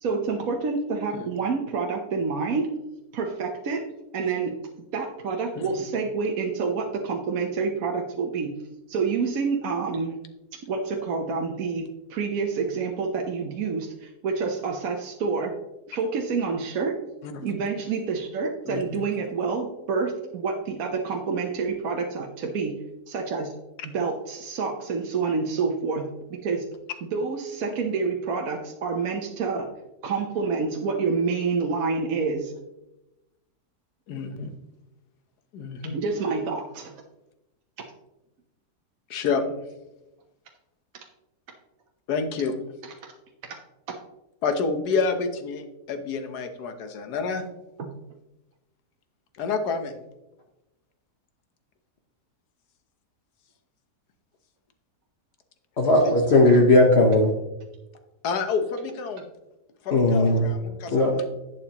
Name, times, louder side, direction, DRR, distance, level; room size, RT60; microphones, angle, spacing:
voice 1, 0.0-2.7 3.1-3.8 4.1-4.5 4.9-8.5 8.9-10.2 10.7-15.5 15.9-16.9 17.4-22.7 23.1-23.5 23.8-26.7 27.1-29.7 30.0-32.5 35.9-36.9 43.5-43.6 47.8-47.9, right 4 dB, 65° right, 2 dB, 1.2 m, -28 dB
voice 2, 17.2-17.6 18.7-19.0 34.1-34.5 35.5-35.9 39.1-39.4 42.1-42.5 44.4-47.4 49.4-50.0 56.0-56.1 58.2-59.2 59.8-61.3, left 4 dB, 80° left, 8 dB, 1.5 m, -29 dB
voice 3, 55.8-57.3 59.9-60.5 60.9-61.1, left 2 dB, 45° left, 1 dB, 1.2 m, -17 dB
11.0 x 8.4 x 2.9 m, 0.96 s
omnidirectional pair, 1.7 m